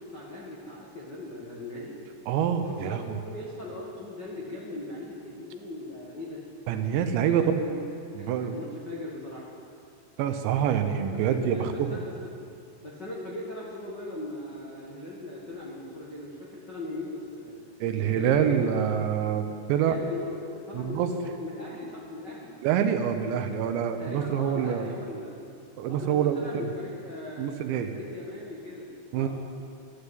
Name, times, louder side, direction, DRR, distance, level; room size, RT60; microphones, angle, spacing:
voice 1, 0.0-2.0 2.6-3.0 3.2-6.4 7.2-7.8 8.2-9.5 11.1-12.4 12.8-17.5 18.0-18.9 19.7-22.6 24.0-25.4 25.9-27.6 27.9-29.3, left 2 dB, 80° left, -5 dB, 0.9 m, -39 dB
voice 2, 2.3-3.2 6.7-7.4 8.1-8.6 10.2-12.0 17.8-19.9 20.7-21.1 22.6-24.9 25.8-26.7 27.4-27.9 29.1-29.3, right 9 dB, 80° right, 7 dB, 2.9 m, -26 dB
13.5 x 12.0 x 8.2 m, 2.5 s
omnidirectional pair, 5.5 m